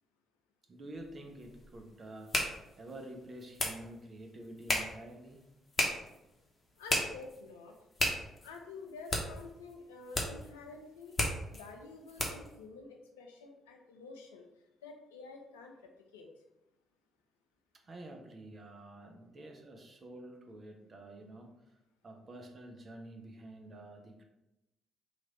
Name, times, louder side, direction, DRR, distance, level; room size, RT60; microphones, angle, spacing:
voice 1, 0.7-5.4 17.8-21.5 22.0-24.2, right 1 dB, 40° right, 3 dB, 0.7 m, -49 dB
sound 1, 1.0-12.6, left 1 dB, 30° left, 0.9 m, -37 dB
voice 2, 6.8-7.8 8.4-11.2 11.5-14.5 14.8-16.3, left 4 dB, 80° left, 3 dB, 0.4 m, -49 dB
3.1 x 2.5 x 4.1 m, 0.94 s
figure-of-eight pair, 45°, 0 cm